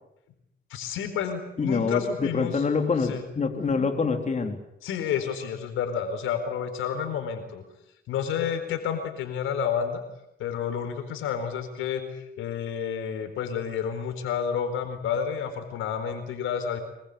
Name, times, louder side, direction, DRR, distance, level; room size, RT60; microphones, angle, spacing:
voice 1, 0.7-2.6 3.0-3.2 4.8-7.6 8.1-10.0 10.4-16.8, left 7 dB, 90° left, 8 dB, 4.3 m, -30 dB
voice 2, 1.6-4.6, left 4 dB, 35° left, 5 dB, 3.8 m, -26 dB
25.5 x 22.5 x 8.5 m, 0.83 s
cardioid pair, 90°, 20 cm